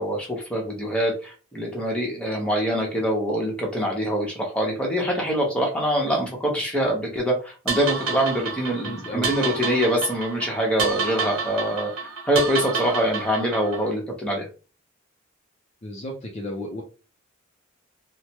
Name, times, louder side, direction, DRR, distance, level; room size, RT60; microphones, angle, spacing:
voice 1, 0.0-11.9 12.3-14.5, equal, 5° left, -2 dB, 0.9 m, -24 dB
sound 1, 7.7-13.9, right 4 dB, 70° right, 0.9 m, -29 dB
voice 2, 8.8-9.3 15.8-16.8, left 1 dB, 30° left, 0 dB, 0.5 m, -33 dB
3.2 x 2.1 x 2.9 m, 0.34 s
head